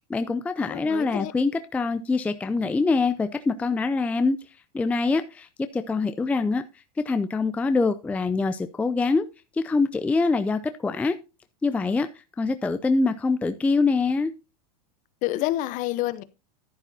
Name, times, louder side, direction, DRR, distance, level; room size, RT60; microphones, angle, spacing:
voice 1, 0.1-4.4 4.7-5.5 5.7-6.6 7.0-9.3 9.5-11.2 11.6-12.1 12.4-14.3, left 3 dB, 5° left, 0.4 m, -24 dB
voice 2, 0.6-1.3 15.2-16.2, left 16 dB, 40° left, 0.8 m, -28 dB
11.0 x 10.0 x 2.7 m
supercardioid pair, 135°, 20 cm